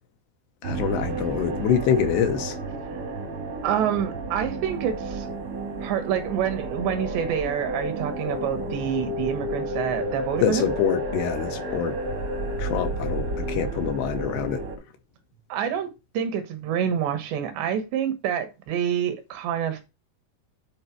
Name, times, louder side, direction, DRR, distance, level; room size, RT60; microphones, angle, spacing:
voice 1, 0.6-2.6 10.4-12.0 12.6-14.6, left 8 dB, 80° left, 2.9 m, -25 dB
sound 1, 0.6-14.8, right 1 dB, 55° right, 1.5 m, -31 dB
voice 2, 3.6-5.3 5.8-10.7 15.5-19.9, right 9 dB, 80° right, 3.5 m, -27 dB
9.6 x 4.4 x 4.5 m
omnidirectional pair, 5.0 m